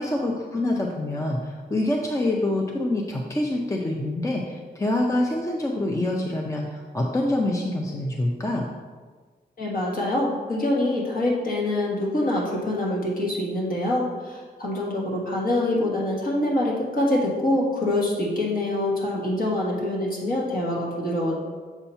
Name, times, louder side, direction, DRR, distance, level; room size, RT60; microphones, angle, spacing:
voice 1, 0.0-8.7, left 1 dB, 15° left, 0 dB, 0.4 m, -26 dB
voice 2, 9.6-21.4, left 1 dB, 55° left, -3 dB, 1.5 m, -25 dB
7.0 x 2.8 x 5.5 m, 1.4 s
wide cardioid pair, 170°, 18 cm